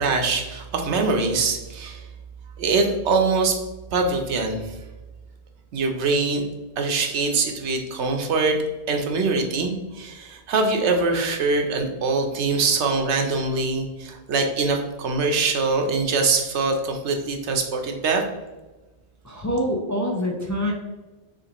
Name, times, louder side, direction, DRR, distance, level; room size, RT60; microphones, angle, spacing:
voice 1, 0.0-2.1 2.6-3.6 3.9-4.8 5.7-6.5 6.8-8.6 8.9-18.2, right 3 dB, 85° right, 3 dB, 1.0 m, -23 dB
voice 2, 19.2-20.7, equal, 20° left, -1 dB, 0.5 m, -25 dB
6.5 x 2.6 x 2.9 m, 1.1 s
omnidirectional pair, 1.1 m